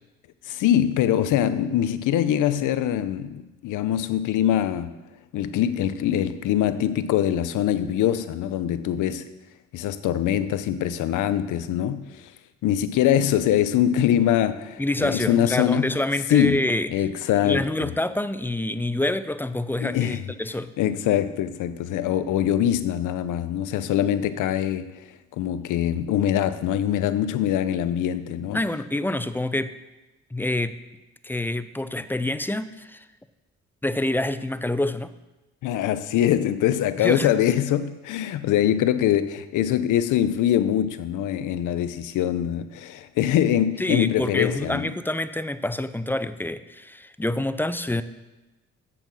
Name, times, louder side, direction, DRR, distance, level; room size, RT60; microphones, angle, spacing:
voice 1, 0.4-4.9 5.3-9.3 9.7-12.3 12.6-15.9 16.3-16.6 16.9-17.9 19.8-20.2 20.8-28.6 35.6-44.9, left 11 dB, 85° left, 13 dB, 0.7 m, -23 dB
voice 2, 14.8-16.9 17.4-20.7 28.5-29.7 30.3-30.8 31.2-33.1 33.8-35.1 37.0-37.3 43.8-48.0, left 1 dB, 5° left, 13 dB, 0.4 m, -26 dB
8.0 x 7.2 x 6.2 m, 1.1 s
cardioid pair, 90°, 30 cm